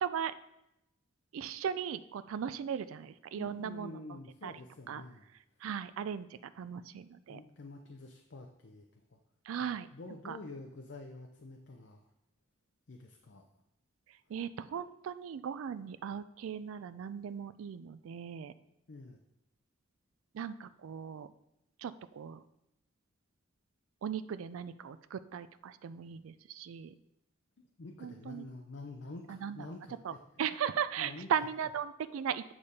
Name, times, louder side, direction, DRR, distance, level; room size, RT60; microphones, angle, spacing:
voice 1, 0.0-0.3 1.3-4.5 4.9-5.0 5.6-7.4 9.5-9.9 10.2-10.4 14.3-18.5 20.3-21.3 21.8-22.4 24.0-26.9 28.0-28.4 29.3-29.7 30.0-32.5, right 8 dB, 80° right, 13 dB, 0.3 m, -38 dB
voice 2, 3.3-5.3 7.3-9.2 9.5-12.1 12.9-13.5 18.9-19.2 27.8-30.5 31.0-31.3, left 2 dB, 60° left, 3 dB, 0.6 m, -48 dB
8.6 x 5.0 x 4.2 m, 0.87 s
head